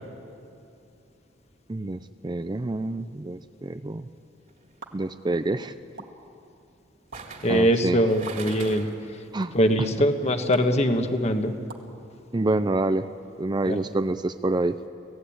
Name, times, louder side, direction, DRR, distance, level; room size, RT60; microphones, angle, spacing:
voice 1, 1.7-4.1 4.9-5.7 7.5-8.0 9.3-9.9 12.3-13.1 13.4-14.8, right 2 dB, 25° right, 11 dB, 0.5 m, -27 dB
sound 1, 4.5-4.8 7.1-9.1 9.4-9.5, right 4 dB, 45° right, 2.6 m, -41 dB
sound 2, 4.8-4.9 6.0-6.1 7.1-7.2 8.3-8.4 9.4-9.5 10.5-10.6 11.7-11.9, right 4 dB, 75° right, 1.9 m, -40 dB
voice 2, 7.4-8.9 9.5-11.5 13.7-13.8, equal, 35° left, 6 dB, 1.4 m, -22 dB
25.0 x 17.0 x 8.7 m, 2.6 s
head